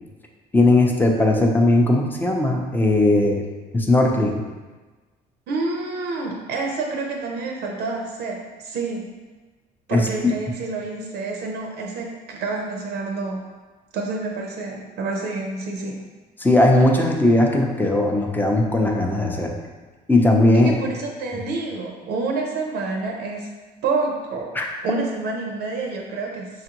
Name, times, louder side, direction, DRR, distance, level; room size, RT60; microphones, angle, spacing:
voice 1, 0.5-3.4 3.7-4.4 9.9-10.1 16.4-19.5 20.1-20.7 24.5-24.7, left 2 dB, 10° left, 1 dB, 0.5 m, -18 dB
voice 2, 5.5-9.1 9.9-13.4 13.9-16.0 20.5-23.5 23.8-24.5 24.8-26.6, right 3 dB, 75° right, 1 dB, 0.5 m, -28 dB
5.1 x 2.5 x 2.9 m, 1.3 s
cardioid pair, 110°, 17 cm